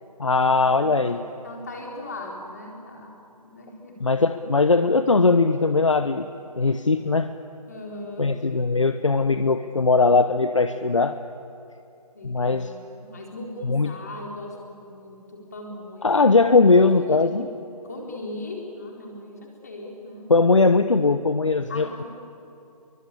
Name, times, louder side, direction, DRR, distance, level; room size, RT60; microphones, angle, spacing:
voice 1, 0.2-1.2 4.0-6.3 6.6-7.3 8.2-11.2 12.2-12.7 13.6-13.9 16.0-17.5 20.3-21.9, left 3 dB, 50° left, 10 dB, 0.9 m, -19 dB
voice 2, 0.8-1.1 1.4-4.1 7.7-8.4 12.1-16.3 16.7-17.6 17.8-20.3 21.7-22.0, left 2 dB, 25° left, -1 dB, 4.1 m, -39 dB
29.0 x 23.5 x 8.6 m, 2.7 s
figure-of-eight pair, 180°, 20 cm